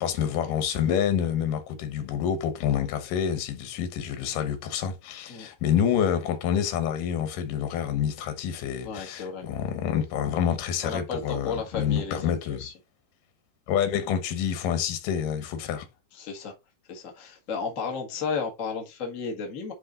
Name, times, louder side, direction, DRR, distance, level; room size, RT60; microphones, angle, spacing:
voice 1, 0.0-12.6 13.7-15.9, left 8 dB, 85° left, 2.7 m, -27 dB
voice 2, 8.8-9.4 10.8-12.7 16.2-16.5 16.9-19.7, left 5 dB, 35° left, 1.4 m, -33 dB
9.8 x 3.4 x 3.8 m
omnidirectional pair, 3.7 m